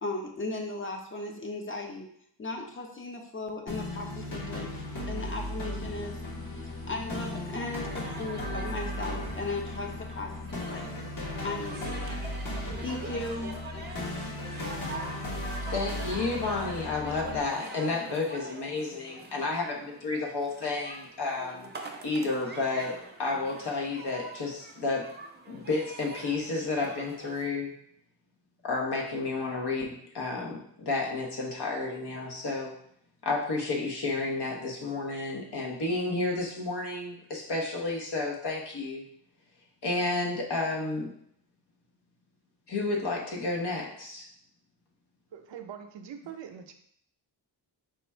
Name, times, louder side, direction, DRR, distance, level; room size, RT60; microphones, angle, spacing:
voice 1, 0.0-2.1 2.4-4.7 5.1-6.2 6.9-10.9 11.4-12.0 12.8-13.6, left 2 dB, 30° left, 2 dB, 0.7 m, -36 dB
sound 1, 3.7-17.4, left 1 dB, 45° left, 1.4 m, -36 dB
sound 2, 7.8-27.5, right 3 dB, 25° right, 0.6 m, -46 dB
voice 2, 15.7-21.7 22.0-25.1 25.5-27.7 28.6-32.7 33.2-39.0 39.8-41.1 42.7-44.3, left 3 dB, 65° left, -1 dB, 1.1 m, -31 dB
voice 3, 45.3-46.7, right 8 dB, 75° right, 6 dB, 0.6 m, -43 dB
4.9 x 2.4 x 4.3 m, 0.68 s
wide cardioid pair, 125°, 44 cm